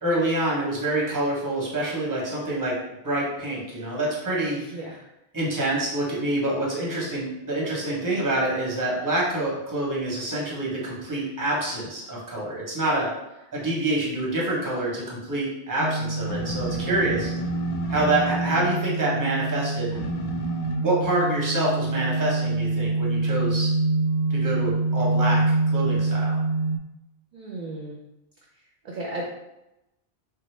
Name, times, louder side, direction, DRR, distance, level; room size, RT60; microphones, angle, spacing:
voice 1, 0.0-2.7 3.0-4.6 5.3-13.1 13.5-17.3 17.9-20.0 20.8-23.7 24.3-25.4 25.7-26.4, right 1 dB, 20° right, -4 dB, 0.7 m, -26 dB
voice 2, 4.4-5.0 27.3-28.0 28.8-29.2, right 2 dB, 60° right, -3 dB, 0.5 m, -35 dB
sound 1, 15.8-26.8, right 2 dB, 85° left, 0.9 m, -25 dB
3.3 x 2.0 x 3.1 m, 0.93 s
omnidirectional pair, 1.1 m